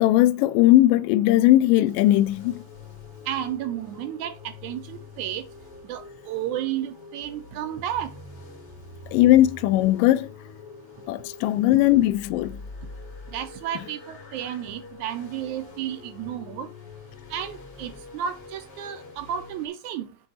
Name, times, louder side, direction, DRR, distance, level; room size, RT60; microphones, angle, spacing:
voice 1, 0.0-2.6 9.1-10.3 11.1-12.6, left 15 dB, 80° left, 2.1 m, -19 dB
sound 1, 1.8-19.7, left 3 dB, 45° left, 2.9 m, -44 dB
voice 2, 3.3-4.3 4.6-5.4 5.9-8.1 13.3-16.7 17.3-20.1, right 10 dB, 75° right, 1.8 m, -32 dB
8.0 x 3.8 x 6.3 m
omnidirectional pair, 4.0 m